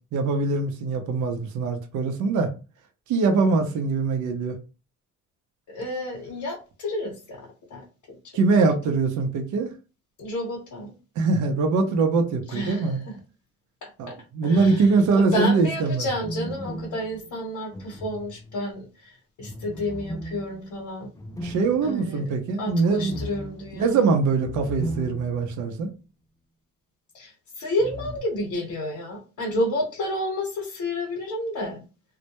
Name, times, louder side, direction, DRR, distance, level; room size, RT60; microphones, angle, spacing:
voice 1, 0.1-2.5 3.1-4.6 8.3-9.7 11.2-13.0 14.0-16.1 21.4-23.2 23.8-25.9, right 4 dB, 75° right, 0.6 m, -23 dB
voice 2, 5.7-8.2 8.9-9.0 10.2-10.9 12.5-13.2 13.8-13.9 14.4-14.9 15.1-21.1 21.8-22.2 22.6-24.1 27.1-31.8, left 1 dB, 70° left, 0.8 m, -30 dB
sound 1, 14.5-15.2 16.0-18.8 19.4-25.7 25.9-26.0 27.8-28.2, equal, 10° left, 0.3 m, -37 dB
2.1 x 2.0 x 2.8 m
cardioid pair, 90°, 30 cm